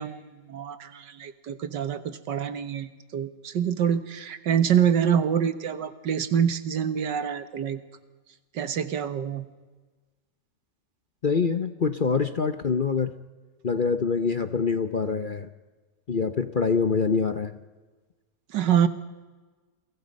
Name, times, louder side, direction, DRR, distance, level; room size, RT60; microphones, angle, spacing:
voice 1, 0.0-7.8 8.5-9.5 18.5-18.9, right 8 dB, 90° right, 12 dB, 2.0 m, -26 dB
voice 2, 11.2-13.1 13.6-15.5 16.1-17.5, left 5 dB, 40° left, 10 dB, 0.7 m, -25 dB
29.5 x 23.5 x 5.4 m, 1.3 s
omnidirectional pair, 1.8 m